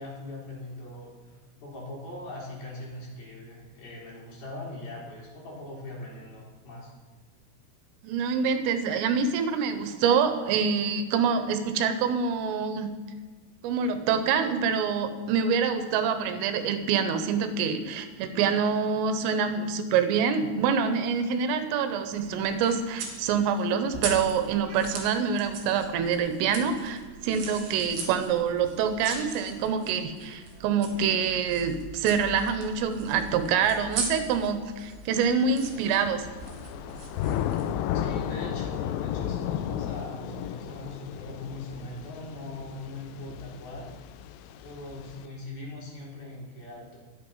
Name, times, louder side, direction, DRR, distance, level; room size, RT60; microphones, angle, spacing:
voice 1, 0.0-1.3 1.6-6.9 37.9-43.9 44.6-47.0, left 2 dB, 50° left, -3 dB, 5.2 m, -40 dB
voice 2, 8.0-12.9 13.6-36.3, right 6 dB, 80° right, 8 dB, 3.5 m, -26 dB
sound 1, 22.1-37.7, right 4 dB, 65° right, 4.9 m, -40 dB
Thunder / Rain, 35.3-45.2, left 10 dB, 80° left, 2.9 m, -34 dB
23.0 x 9.0 x 5.6 m, 1.4 s
omnidirectional pair, 5.9 m